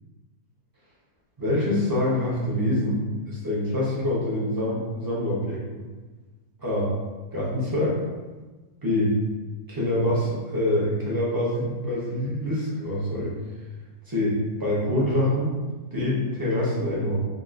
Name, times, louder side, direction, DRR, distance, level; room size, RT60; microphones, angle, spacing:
voice 1, 1.4-3.0 3.3-5.9 6.6-6.9 7.3-8.0 8.8-9.2 9.7-13.3 14.1-15.5 15.9-17.2, left 1 dB, 15° right, -6 dB, 0.8 m, -25 dB
5.1 x 2.9 x 2.5 m, 1.3 s
omnidirectional pair, 1.6 m